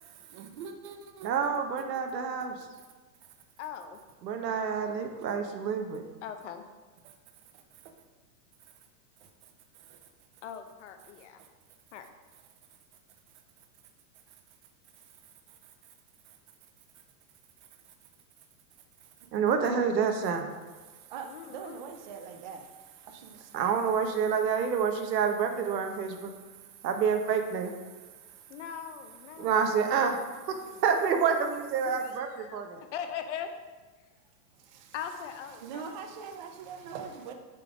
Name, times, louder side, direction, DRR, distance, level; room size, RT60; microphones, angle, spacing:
voice 1, 0.0-1.3 7.0-7.1 9.2-9.3 9.8-10.0 11.4-11.5 15.6-15.7 16.3-16.4 20.8-23.8 26.4-26.7 28.0-28.6 29.3-29.5 34.6-34.9 35.6-37.3, right 6 dB, 30° right, 5 dB, 0.4 m, -44 dB
voice 2, 1.2-2.6 4.2-6.0 19.3-20.5 23.5-26.3 26.8-27.7 29.4-30.2 30.5-32.8, right 6 dB, 85° right, 6 dB, 1.1 m, -28 dB
voice 3, 3.6-4.0 6.2-6.6 10.4-11.4 11.9-12.0 21.2-21.8 28.5-29.6 31.8-32.6 32.9-33.5 34.9-35.9, left 8 dB, 50° left, 7 dB, 0.7 m, -40 dB
7.5 x 3.9 x 4.9 m, 1.3 s
supercardioid pair, 155°, 48 cm